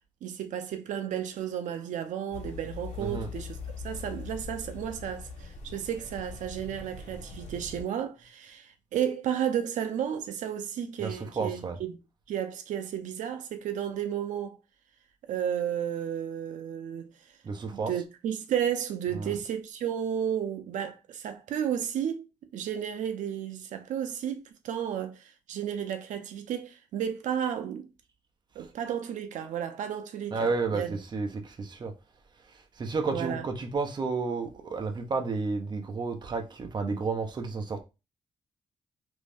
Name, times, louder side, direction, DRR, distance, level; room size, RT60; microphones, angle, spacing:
voice 1, 0.2-3.6 3.8-12.0 12.3-14.6 15.3-17.1 17.7-22.3 22.5-27.9 28.6-31.0 33.1-33.5, right 9 dB, 90° right, 0.5 m, -33 dB
sound 1, 2.3-7.8, left 4 dB, 80° left, 1.1 m, -41 dB
voice 2, 3.0-3.3 11.0-11.8 17.4-18.0 19.1-19.4 30.3-31.9 32.8-37.8, right 4 dB, 35° right, 0.7 m, -31 dB
3.1 x 2.6 x 3.3 m
cardioid pair, 120°, 12 cm